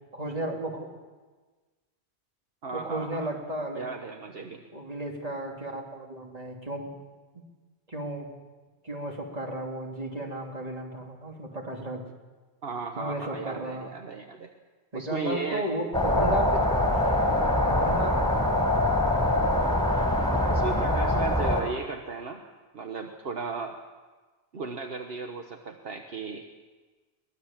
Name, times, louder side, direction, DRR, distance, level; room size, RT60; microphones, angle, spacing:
voice 1, 0.1-0.9 2.7-3.9 4.7-6.9 7.3-7.4 7.9-8.3 8.8-12.1 13.0-13.9 14.9-17.0 17.7-18.2 20.9-21.3, right 1 dB, 35° right, 0 dB, 3.1 m, -34 dB
voice 2, 2.6-3.3 3.7-4.6 12.6-14.5 14.9-15.7 20.5-22.4 22.7-23.8 24.5-26.4, right 4 dB, 65° right, 4 dB, 1.4 m, -35 dB
sound 1, 15.9-21.6, left 1 dB, 5° left, 4.3 m, -24 dB
23.0 x 19.5 x 7.4 m, 1.3 s
omnidirectional pair, 1.1 m